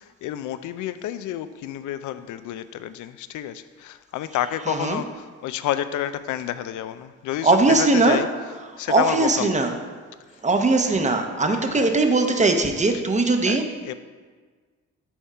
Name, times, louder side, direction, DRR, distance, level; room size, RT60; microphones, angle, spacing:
voice 1, 0.0-9.6 11.5-11.9 12.9-13.0 13.5-13.9, left 12 dB, 75° left, 12 dB, 0.4 m, -30 dB
voice 2, 4.7-5.0 7.4-8.2 8.9-9.7 10.4-13.6, right 3 dB, 25° right, 5 dB, 0.7 m, -20 dB
7.1 x 3.6 x 5.5 m, 1.5 s
cardioid pair, 90°, 30 cm